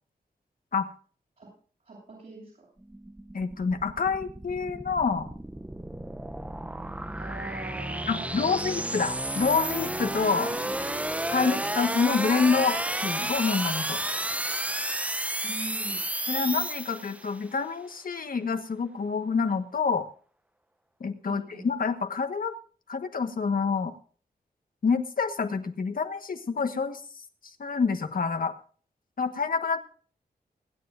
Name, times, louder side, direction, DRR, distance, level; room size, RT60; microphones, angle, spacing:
voice 1, 1.8-2.7 7.2-8.6 10.3-11.0 11.4-11.6 15.4-16.0 21.2-21.7, right 3 dB, 55° right, -6 dB, 8.0 m, -41 dB
sound 1, 2.8-17.4, right 1 dB, 10° right, 0.6 m, -32 dB
voice 2, 3.3-5.3 8.1-10.5 11.3-14.0 16.3-20.1 21.0-22.5 22.9-23.9 24.8-27.0 27.6-28.5 29.2-29.8, left 5 dB, 60° left, 6 dB, 1.3 m, -27 dB
25.5 x 9.5 x 2.6 m, 0.43 s
wide cardioid pair, 105°, 17 cm